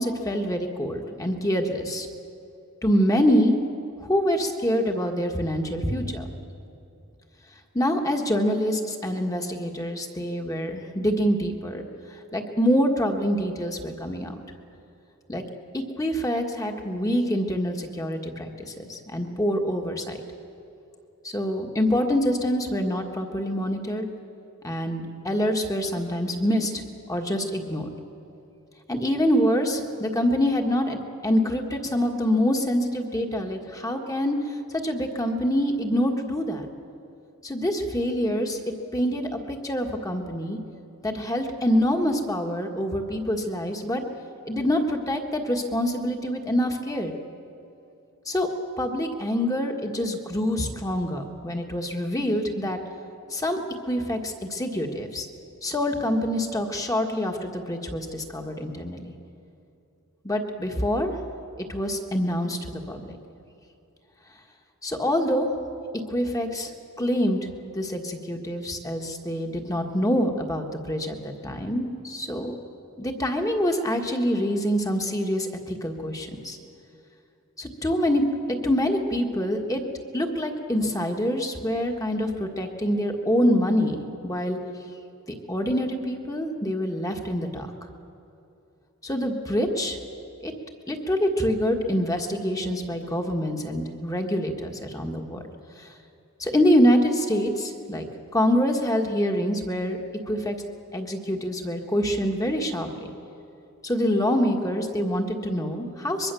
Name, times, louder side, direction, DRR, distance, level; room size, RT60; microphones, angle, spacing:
voice 1, 0.0-2.1 2.8-3.6 4.0-6.2 7.7-11.8 12.3-14.4 15.3-15.4 15.7-20.2 21.2-24.1 24.6-26.8 27.1-27.9 28.9-36.7 37.4-38.6 38.9-40.6 41.0-44.0 44.5-47.1 48.3-48.5 48.8-52.8 53.3-53.6 53.9-55.3 55.6-59.1 60.2-61.1 61.6-63.2 64.8-65.5 66.1-66.7 67.0-72.6 73.0-76.6 77.6-78.2 78.6-79.8 80.1-84.6 85.5-87.7 89.0-90.0 90.4-90.5 90.9-95.4 95.8-95.9 96.4-98.1 98.3-100.0 100.3-100.6 100.9-103.1 103.8-106.3, equal, 15° left, 3 dB, 1.7 m, -25 dB
23.0 x 22.5 x 7.0 m, 2.7 s
head